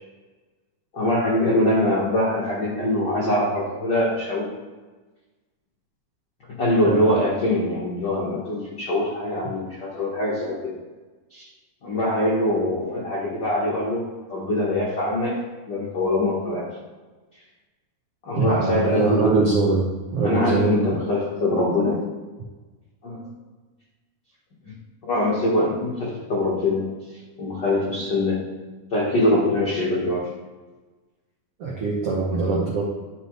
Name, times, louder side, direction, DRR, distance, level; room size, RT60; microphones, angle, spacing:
voice 1, 0.9-4.5 6.6-10.8 11.3-11.5 11.8-15.4 15.7-16.8 18.2-19.2 20.2-22.0 23.0-23.2 24.6-24.7 25.0-26.9 27.4-28.4 28.9-30.3, left 1 dB, 65° left, -6 dB, 1.0 m, -23 dB
voice 2, 18.3-19.9 20.1-20.9 31.6-32.8, right 3 dB, 75° right, -4 dB, 1.3 m, -22 dB
11.0 x 6.2 x 3.2 m, 1.3 s
omnidirectional pair, 4.3 m